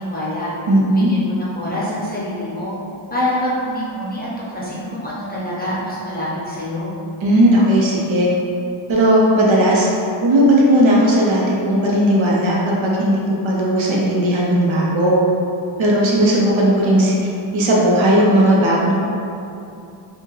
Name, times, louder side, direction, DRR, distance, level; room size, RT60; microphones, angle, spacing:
voice 1, 0.0-0.5 0.9-2.7 3.1-7.0, left 1 dB, 20° left, -8 dB, 0.8 m, -26 dB
voice 2, 0.7-1.1 7.2-8.3 8.9-9.9 10.2-12.6 12.8-15.2 15.8-17.1 17.5-19.0, right 1 dB, 70° right, -4 dB, 0.9 m, -16 dB
4.5 x 2.4 x 3.2 m, 2.7 s
wide cardioid pair, 115°, 48 cm